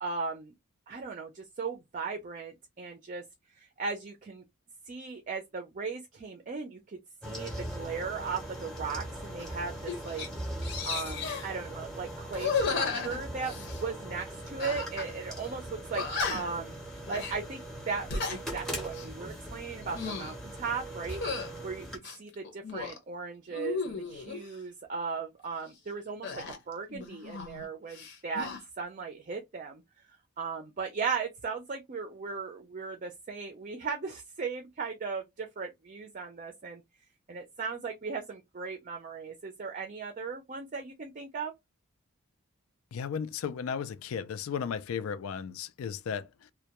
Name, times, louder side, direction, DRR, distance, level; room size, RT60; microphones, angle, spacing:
voice 1, 0.0-0.5 0.9-4.4 4.9-7.0 7.2-16.8 17.1-21.2 21.6-28.5 28.8-36.8 37.3-41.5, right 5 dB, 35° right, 0.4 m, -37 dB
sound 1, 7.2-22.0, right 1 dB, ahead, 0.7 m, -40 dB
sound 2, 9.4-9.5 9.9-10.3 10.6-11.5 12.3-13.8 14.6-15.1 15.4-15.5 15.9-16.6 17.1-17.4 17.9-18.4 18.8-19.1 19.7-20.3 21.1-21.5 22.0-23.0 23.5-24.4 26.2-27.6 27.9-28.6, left 4 dB, 55° left, 0.7 m, -34 dB
voice 2, 42.9-46.5, left 7 dB, 75° left, 0.4 m, -35 dB
2.1 x 2.1 x 2.8 m
head